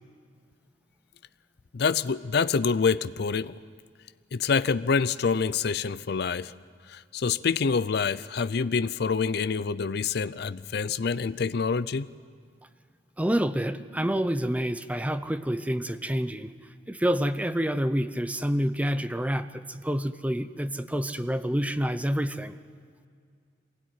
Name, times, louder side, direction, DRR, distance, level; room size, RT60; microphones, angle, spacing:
voice 1, 1.7-3.5 4.3-6.5 6.9-12.1, left 5 dB, 60° left, 15 dB, 0.5 m, -26 dB
voice 2, 13.2-16.5 16.9-22.6, equal, 10° right, 11 dB, 0.7 m, -28 dB
24.5 x 16.5 x 9.4 m, 2.1 s
head